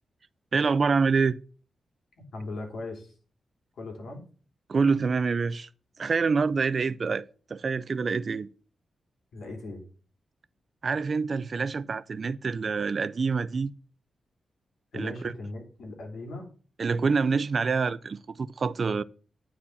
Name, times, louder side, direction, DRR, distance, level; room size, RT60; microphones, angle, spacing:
voice 1, 0.5-1.3 4.7-5.7 6.0-8.5 10.8-13.7 14.9-15.3 16.8-19.0, right 5 dB, 40° right, 0.4 m, -26 dB
voice 2, 2.3-3.1 3.8-4.2 9.3-9.8 14.9-16.5, left 2 dB, 80° left, 2.9 m, -38 dB
9.7 x 4.3 x 7.2 m
wide cardioid pair, 155°, 0 cm